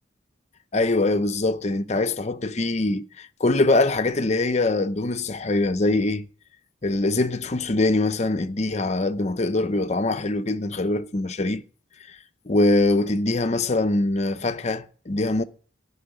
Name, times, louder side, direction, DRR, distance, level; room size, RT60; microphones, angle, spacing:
voice 1, 0.7-6.3 6.8-11.6 12.5-15.4, left 2 dB, 40° left, 0.7 m, -23 dB
14.5 x 5.7 x 9.8 m
head